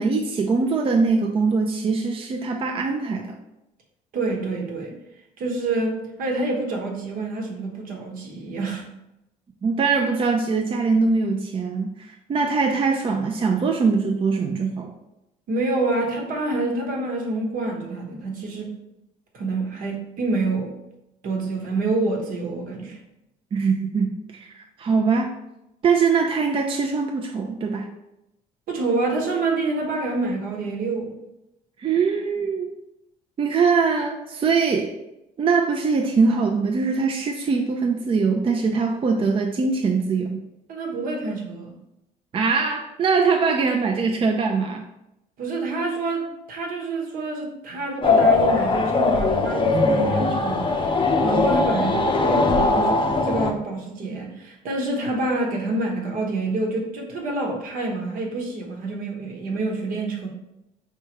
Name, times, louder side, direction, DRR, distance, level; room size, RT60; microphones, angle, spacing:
voice 1, 0.0-3.3 9.6-14.9 23.5-24.1 24.5-25.4 25.8-27.9 31.8-32.7 33.4-34.9 35.4-40.4 42.3-44.9, right 4 dB, 35° right, 2 dB, 0.5 m, -22 dB
voice 2, 4.1-5.0 5.4-8.9 15.5-18.8 19.3-20.7 21.2-23.0 28.7-31.1 40.7-41.7 45.4-60.3, right 2 dB, 70° right, 0 dB, 1.2 m, -27 dB
sound 1, 48.0-53.5, left 3 dB, 35° left, 0.5 m, -20 dB
4.7 x 3.3 x 3.0 m, 0.89 s
cardioid pair, 90°, 15 cm